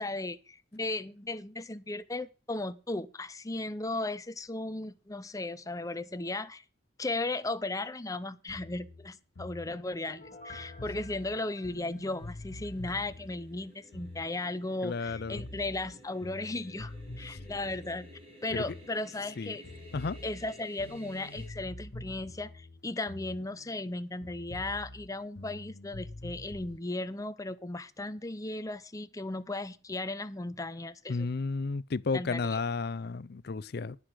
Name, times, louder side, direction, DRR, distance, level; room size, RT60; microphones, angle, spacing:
voice 1, 0.0-6.6 7.0-18.1 18.4-19.6 20.2-31.3 32.1-32.6, left 2 dB, 20° left, 0.8 m, -36 dB
sound 1, 8.5-14.8 15.1-19.4 19.6-23.9 24.2-26.8, left 1 dB, 75° left, 1.0 m, -46 dB
Piano, 10.1-12.8 13.2-13.3, left 2 dB, 40° left, 3.8 m, -52 dB
sound 2, 11.2-21.5, equal, 35° right, 4.1 m, -55 dB
voice 2, 14.8-15.5 17.3-17.4 18.5-18.7 19.4-19.6 19.9-20.2 31.1-34.0, left 4 dB, 60° left, 0.5 m, -33 dB
9.9 x 9.7 x 6.3 m
head